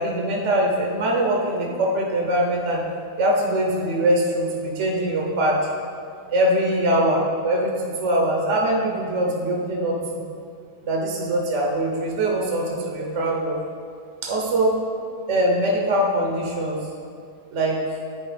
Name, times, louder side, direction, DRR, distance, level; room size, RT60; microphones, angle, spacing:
voice 1, 0.0-2.8 3.2-5.6 6.3-10.2 10.8-13.6 14.2-14.8 15.3-16.8 17.5-17.8, right 1 dB, 55° right, -2 dB, 1.0 m, -22 dB
10.0 x 4.5 x 3.3 m, 2.3 s
omnidirectional pair, 1.6 m